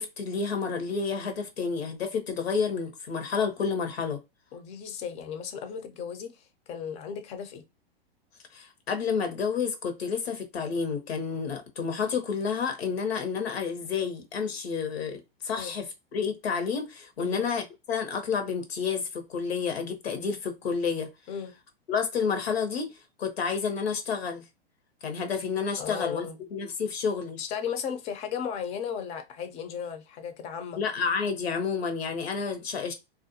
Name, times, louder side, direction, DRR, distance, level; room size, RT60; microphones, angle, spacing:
voice 1, 0.0-4.2 8.5-21.1 21.9-24.4 25.0-27.4 30.8-32.9, left 5 dB, 80° left, 0.9 m, -30 dB
voice 2, 4.5-7.6 15.6-15.7 17.2-17.4 21.3-21.5 25.8-26.4 27.4-30.8, left 7 dB, 20° left, 0.4 m, -35 dB
2.4 x 2.2 x 2.6 m
hypercardioid pair, 125°, 30 cm